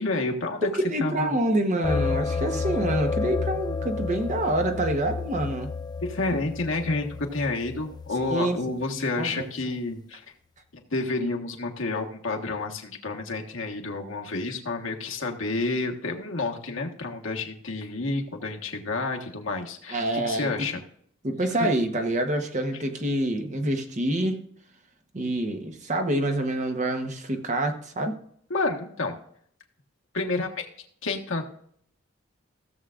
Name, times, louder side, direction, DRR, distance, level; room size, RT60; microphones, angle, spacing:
voice 1, 0.0-0.7 1.0-1.3 6.0-10.2 10.7-20.8 21.6-21.7 28.5-29.2 30.1-30.7 31.0-31.4, left 3 dB, 75° left, 2 dB, 1.4 m, -29 dB
voice 2, 0.9-5.7 8.3-8.6 9.0-9.5 19.9-20.7 21.2-24.4 25.1-28.1, right 1 dB, 35° right, 4 dB, 1.1 m, -27 dB
sound 1, 1.8-8.4, left 4 dB, 20° left, 0.3 m, -31 dB
16.0 x 7.4 x 2.5 m, 0.64 s
head